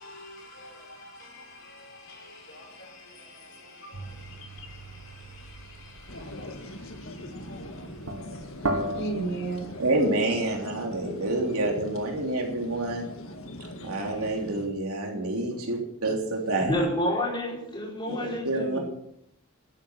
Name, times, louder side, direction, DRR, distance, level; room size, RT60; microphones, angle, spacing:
voice 1, 0.0-9.7, right 2 dB, 55° left, 5.0 m, -41 dB
sound 1, 3.9-9.9, right 1 dB, 70° right, 1.5 m, -37 dB
sound 2, 6.1-14.7, left 1 dB, 70° left, 1.8 m, -41 dB
voice 2, 9.8-13.1 13.8-16.9 18.1-18.2 18.4-18.8, right 2 dB, 85° right, 3.3 m, -28 dB
voice 3, 16.6-18.8, left 1 dB, 20° left, 4.9 m, -29 dB
12.0 x 10.0 x 5.9 m
head